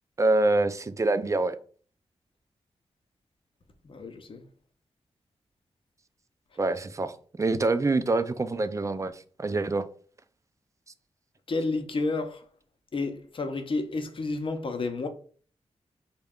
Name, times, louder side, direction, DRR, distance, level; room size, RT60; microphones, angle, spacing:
voice 1, 0.2-1.6 6.6-9.9, right 2 dB, 30° right, 0.3 m, -26 dB
voice 2, 3.8-4.4 11.5-12.4 12.9-15.1, left 3 dB, 50° left, 0.6 m, -30 dB
3.9 x 2.2 x 3.5 m
wide cardioid pair, 80°, 11 cm